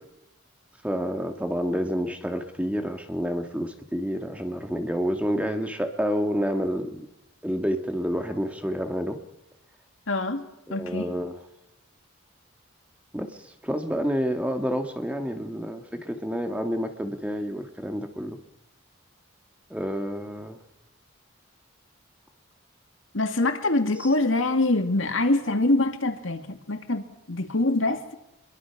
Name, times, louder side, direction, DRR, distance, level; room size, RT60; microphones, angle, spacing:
voice 1, 0.8-7.1 7.4-9.2 10.7-11.3 13.1-13.3 13.6-18.4 19.7-20.6, equal, 5° right, 1.9 m, -29 dB
voice 2, 10.1-11.1 23.1-28.1, left 2 dB, 70° left, 2.2 m, -25 dB
25.0 x 22.5 x 6.0 m
head